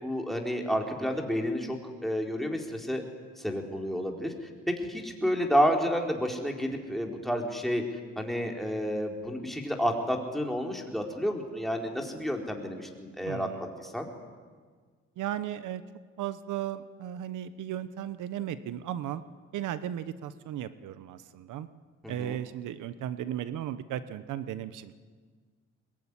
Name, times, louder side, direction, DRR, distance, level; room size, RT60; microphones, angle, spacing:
voice 1, 0.0-3.0 3.4-4.3 4.7-7.8 8.2-13.5 13.8-14.1 22.0-22.4, equal, ahead, 1 dB, 4.4 m, -30 dB
voice 2, 13.2-13.7 15.2-15.8 16.2-19.2 19.5-21.7 22.1-25.0, right 11 dB, 80° right, 13 dB, 1.0 m, -35 dB
22.0 x 21.5 x 10.0 m, 1.6 s
cardioid pair, 90°, 30 cm